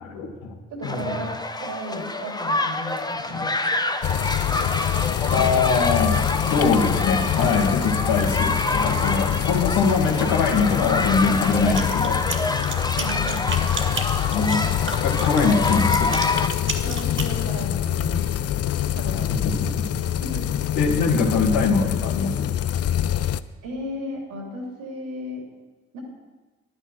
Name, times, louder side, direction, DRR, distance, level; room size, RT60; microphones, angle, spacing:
voice 1, 0.1-0.5 0.8-1.2 3.3-3.4 5.3-6.2 6.5-12.2 14.3-14.7 15.0-16.1 19.3-19.9 20.8-22.5, left 4 dB, 75° left, 2 dB, 1.9 m, -23 dB
voice 2, 0.7-3.8 13.0-13.5 16.8-18.4 18.9-19.4 20.2-20.4 23.6-25.4 25.9-26.0, left 1 dB, 80° right, 0 dB, 3.1 m, -34 dB
sound 1, 0.8-16.5, left 2 dB, 15° left, 1.1 m, -27 dB
sound 2, 4.0-23.4, left 11 dB, 50° left, 0.6 m, -25 dB
sound 3, 11.5-17.3, right 3 dB, 40° right, 2.0 m, -32 dB
11.0 x 9.8 x 6.2 m, 1.2 s
hypercardioid pair, 45°, 31 cm